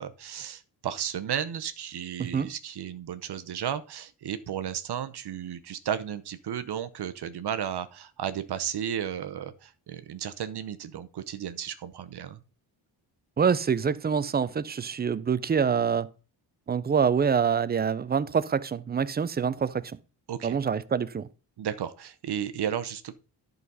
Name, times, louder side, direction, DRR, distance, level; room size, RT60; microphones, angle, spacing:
voice 1, 0.0-12.4 20.3-20.6 21.6-23.1, right 9 dB, 65° right, 0.8 m, -34 dB
voice 2, 13.4-16.1 16.7-19.8 20.4-21.3, right 6 dB, 25° right, 0.4 m, -25 dB
11.0 x 4.0 x 5.4 m
wide cardioid pair, 125°, 42 cm